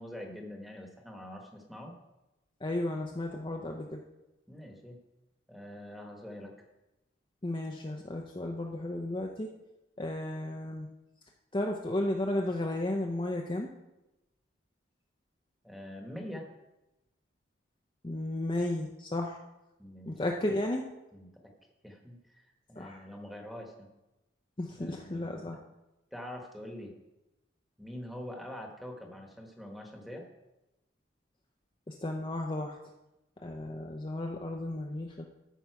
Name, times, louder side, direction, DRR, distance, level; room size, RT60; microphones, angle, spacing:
voice 1, 0.0-1.9 4.5-5.0 5.5-6.7 15.6-16.5 19.8-20.2 21.1-21.3 21.8-22.4 22.7-23.9 24.8-25.6 26.1-26.9 27.8-30.3, left 1 dB, ahead, 1 dB, 1.2 m, -44 dB
voice 2, 2.6-4.0 7.4-9.5 10.0-10.9 11.5-13.7 18.0-19.4 20.1-20.8 22.8-23.0 24.6-25.6 31.9-32.8 33.4-35.3, left 1 dB, 25° left, 1 dB, 0.5 m, -33 dB
13.5 x 5.5 x 4.7 m, 0.98 s
head